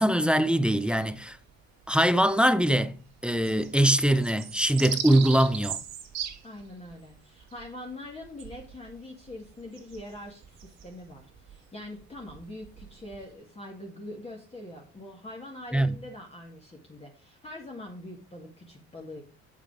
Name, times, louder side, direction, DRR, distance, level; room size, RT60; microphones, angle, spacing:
voice 1, 0.0-1.4 1.9-5.8 15.7-16.0, right 1 dB, 5° right, 0.5 m, -23 dB
sound 1, 0.8-1.9 2.3-2.4 2.6-13.3, right 9 dB, 65° right, 1.7 m, -40 dB
voice 2, 6.4-19.2, left 1 dB, 20° left, 1.9 m, -43 dB
8.0 x 5.6 x 4.8 m
cardioid pair, 120°, 29 cm